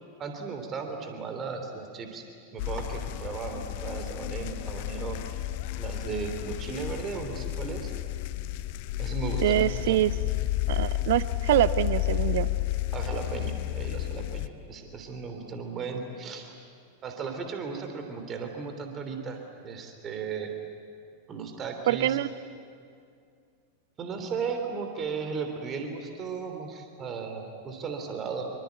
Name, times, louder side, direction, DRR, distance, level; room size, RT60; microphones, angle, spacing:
voice 1, 0.2-2.2 2.5-5.5 5.8-7.9 9.0-10.0 12.9-16.5 17.0-20.5 21.3-22.2 24.0-28.5, right 5 dB, 25° right, 5 dB, 3.2 m, -36 dB
sound 1, 2.6-14.5, left 16 dB, 50° left, 0.8 m, -31 dB
voice 2, 9.4-10.1 10.7-12.5 21.9-22.3, right 13 dB, 55° right, 16 dB, 0.8 m, -24 dB
25.5 x 23.5 x 9.3 m, 2.3 s
figure-of-eight pair, 90°, 0 cm